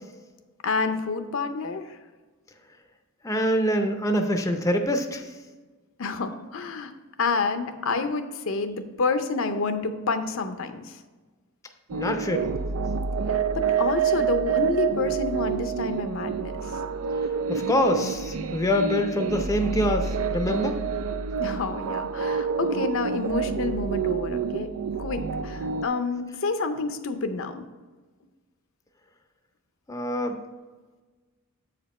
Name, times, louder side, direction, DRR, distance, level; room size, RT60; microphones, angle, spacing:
voice 1, 0.6-2.0 6.0-6.9 7.2-11.0 13.5-16.7 21.4-27.7, left 4 dB, 65° left, 8 dB, 0.6 m, -28 dB
voice 2, 3.2-5.3 11.9-12.6 17.5-20.8 29.9-30.4, equal, 15° left, 5 dB, 0.5 m, -25 dB
sound 1, 11.9-25.9, right 6 dB, 85° right, 0.4 m, -28 dB
7.7 x 5.1 x 4.2 m, 1.3 s
head